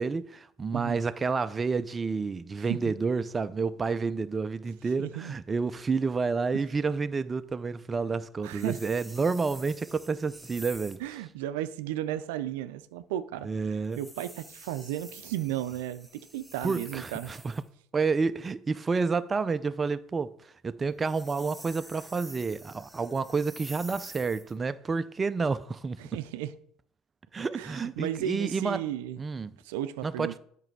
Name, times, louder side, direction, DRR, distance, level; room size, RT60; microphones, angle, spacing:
voice 1, 0.0-11.0 13.4-14.0 16.6-17.6 17.9-20.3 20.6-26.0 27.3-28.8 29.2-29.5 30.0-30.4, right 4 dB, 25° right, 0.4 m, -29 dB
voice 2, 0.7-1.0 2.7-2.9 5.0-5.3 6.5-6.6 8.4-8.8 11.0-13.5 14.0-17.4 26.0-26.5 27.5-29.2 29.6-30.4, right 12 dB, 85° right, 0.4 m, -34 dB
sound 1, 8.4-11.1 13.8-17.7 20.9-24.6, right 1 dB, ahead, 0.9 m, -48 dB
9.0 x 5.3 x 4.7 m
supercardioid pair, 85°, 0 cm